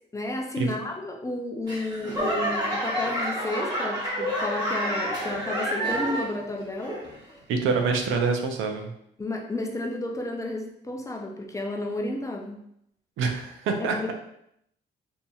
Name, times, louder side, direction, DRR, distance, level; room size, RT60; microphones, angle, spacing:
voice 1, 0.1-7.0 9.2-12.6 13.8-14.1, left 2 dB, 15° left, 2 dB, 0.4 m, -32 dB
Laughter / Clapping / Crowd, 1.7-6.4 6.8-7.3 7.9-8.0, equal, 20° right, 1.2 m, -29 dB
voice 2, 7.5-8.9 13.2-14.1, right 4 dB, 80° right, 3 dB, 0.5 m, -26 dB
2.8 x 2.7 x 2.3 m, 0.74 s
cardioid pair, 90°, 20 cm